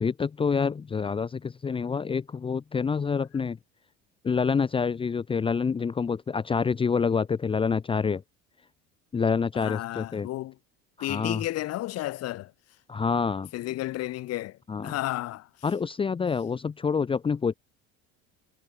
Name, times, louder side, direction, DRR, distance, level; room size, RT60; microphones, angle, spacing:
voice 1, 0.0-3.6 4.2-8.2 9.1-10.3 11.0-11.4 12.9-13.5 14.7-14.9 15.6-17.5, left 5 dB, 15° left, 1.0 m, -27 dB
voice 2, 9.5-10.6 11.0-12.5 13.5-15.5, left 16 dB, 50° left, 3.9 m, -32 dB
cardioid pair, 150°, 31 cm